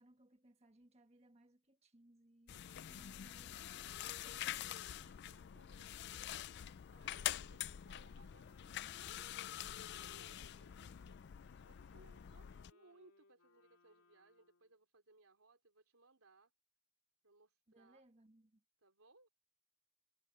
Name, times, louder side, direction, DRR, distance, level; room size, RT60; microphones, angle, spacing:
voice 1, 0.0-4.8 7.0-7.4 17.7-18.6, right 1 dB, 30° right, 1.5 m, -67 dB
sound 1, 2.5-12.7, left 12 dB, 50° left, 0.3 m, -46 dB
voice 2, 4.7-9.4 10.0-11.2 11.6-16.5 17.2-18.0 18.8-19.3, right 3 dB, 80° right, 3.5 m, -68 dB
Wind instrument woodwind instrument, 6.5-14.8, left 3 dB, 85° left, 2.6 m, -71 dB
head